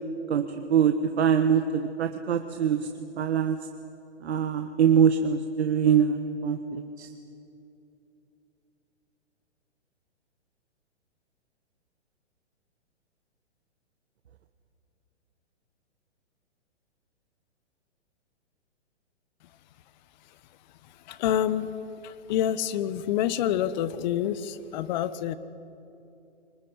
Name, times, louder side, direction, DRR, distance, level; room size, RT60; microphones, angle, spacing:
voice 1, 0.3-2.8 3.2-3.6 4.2-7.1, right 7 dB, 65° right, 7 dB, 1.5 m, -24 dB
voice 2, 21.1-21.7 22.0-25.4, left 10 dB, 40° left, 14 dB, 1.2 m, -27 dB
24.5 x 20.5 x 9.7 m, 2.7 s
figure-of-eight pair, 125°, 35 cm